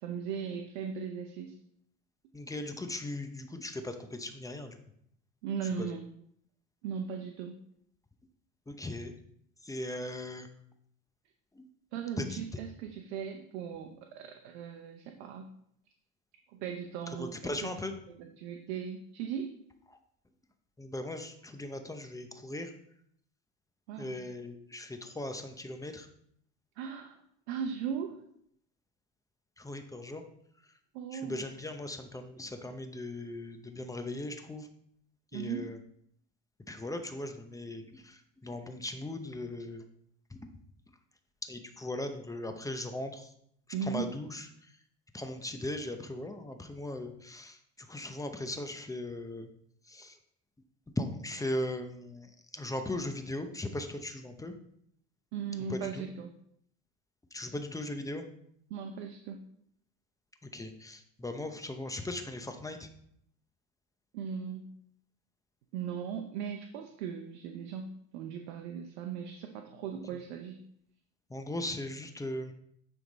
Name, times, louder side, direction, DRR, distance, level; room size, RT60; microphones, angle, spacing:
voice 1, 0.0-1.5 5.4-6.1 6.8-7.6 11.9-15.5 16.5-17.7 18.1-19.6 23.9-24.2 26.8-27.2 27.5-28.2 30.9-31.5 35.3-35.7 43.7-44.1 55.3-56.3 58.7-59.4 64.1-64.7 65.7-70.6, right 7 dB, 80° right, 4 dB, 0.8 m, -38 dB
voice 2, 2.3-4.8 5.8-5.9 8.7-9.1 9.6-10.5 11.6-11.7 12.2-12.4 17.2-17.9 20.8-22.7 24.0-26.1 29.6-30.2 31.1-34.7 35.3-35.8 36.7-39.8 40.3-40.4 41.5-43.3 43.9-44.4 45.1-47.6 47.9-49.5 49.9-50.2 51.0-54.5 55.7-56.0 57.3-58.2 60.5-62.9 71.3-72.5, left 1 dB, 10° left, 6 dB, 0.7 m, -38 dB
9.3 x 3.5 x 4.0 m, 0.70 s
supercardioid pair, 95°, 34 cm